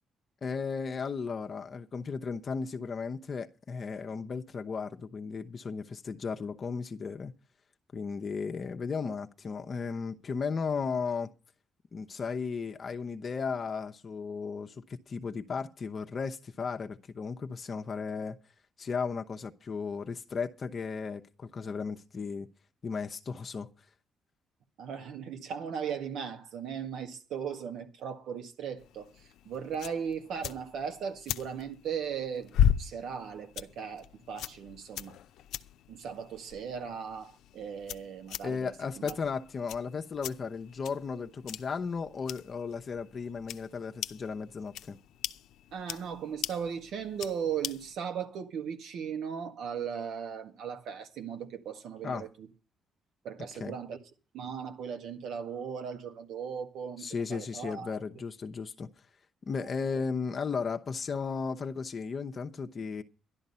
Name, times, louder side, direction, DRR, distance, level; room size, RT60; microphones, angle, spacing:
voice 1, 0.4-7.3 7.9-11.3 11.9-18.4 18.8-22.5 22.8-23.7 38.4-45.0 52.0-52.3 53.6-53.8 57.0-58.9 59.4-63.0, left 5 dB, 45° left, 0.8 m, -35 dB
voice 2, 24.8-35.1 35.9-39.2 45.7-52.5 53.2-54.0 54.3-58.0, right 7 dB, 80° right, 1.8 m, -37 dB
sound 1, 28.8-47.9, left 10 dB, 85° left, 0.6 m, -37 dB
12.0 x 11.5 x 5.5 m
cardioid pair, 90°, 0 cm